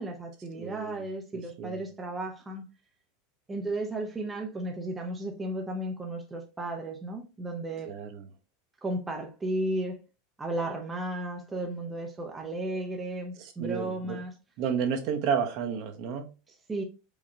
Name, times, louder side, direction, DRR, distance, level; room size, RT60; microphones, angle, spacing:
voice 1, 0.0-2.7 3.5-7.9 8.8-10.0 10.4-14.3 16.5-16.8, right 1 dB, 15° right, 0.6 m, -34 dB
voice 2, 0.6-1.0 1.6-1.8 7.8-8.3 13.4-14.2 14.6-16.3, right 7 dB, 50° right, 0.9 m, -31 dB
4.8 x 2.8 x 2.3 m
supercardioid pair, 145°, 0 cm